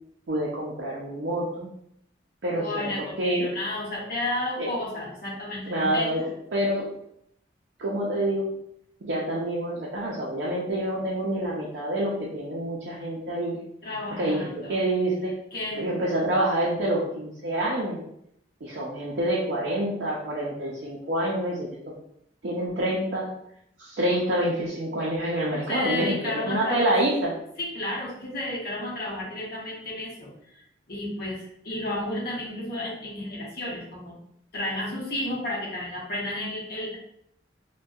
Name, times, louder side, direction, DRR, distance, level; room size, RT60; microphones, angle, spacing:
voice 1, 0.3-1.7 2.4-2.9 3.2-3.5 4.6-4.7 5.7-6.2 6.5-6.9 7.8-8.5 9.0-13.6 14.2-15.3 15.8-18.0 18.6-21.8 22.4-23.3 23.8-27.3, right 1 dB, 65° right, -5 dB, 0.5 m, -27 dB
voice 2, 2.6-6.1 13.8-14.8 15.5-15.8 25.7-26.9 27.6-30.3 30.9-34.1 34.5-37.0, left 1 dB, 55° left, -4 dB, 0.8 m, -32 dB
2.6 x 2.2 x 2.3 m, 0.74 s
head